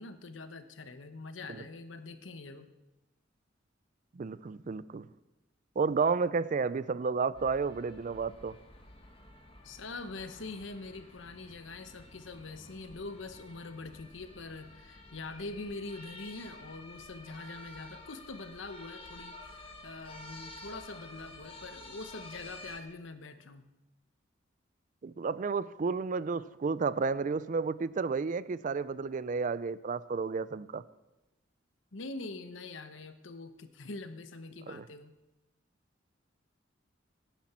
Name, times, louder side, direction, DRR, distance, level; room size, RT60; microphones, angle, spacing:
voice 1, 0.0-2.7 9.6-23.7 31.9-35.1, left 3 dB, 85° left, 9 dB, 1.0 m, -44 dB
voice 2, 4.2-5.1 5.8-8.6 25.0-30.8 34.7-34.8, right 4 dB, 40° right, 17 dB, 0.4 m, -31 dB
sound 1, 7.3-22.8, left 2 dB, 30° left, 1.4 m, -51 dB
17.5 x 10.5 x 4.4 m, 1.0 s
head